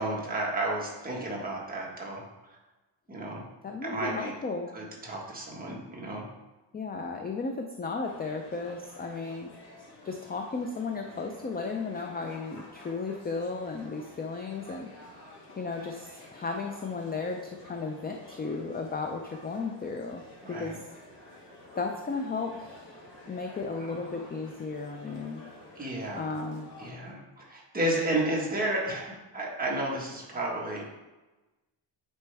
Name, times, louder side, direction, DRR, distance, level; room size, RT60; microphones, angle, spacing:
voice 1, 0.0-2.2 3.1-3.5 3.8-4.3 4.7-6.3 20.4-20.8 23.8-24.0 25.8-26.3 26.8-30.9, right 1 dB, 20° right, -3 dB, 1.4 m, -32 dB
voice 2, 3.6-4.7 6.7-9.5 10.0-14.9 15.6-20.2 20.5-20.8 21.8-25.4 26.1-26.7, left 4 dB, 25° left, 3 dB, 0.3 m, -34 dB
sound 1, 8.0-26.9, left 1 dB, 65° left, 2.2 m, -51 dB
9.1 x 4.4 x 3.4 m, 1.1 s
wide cardioid pair, 175°, 44 cm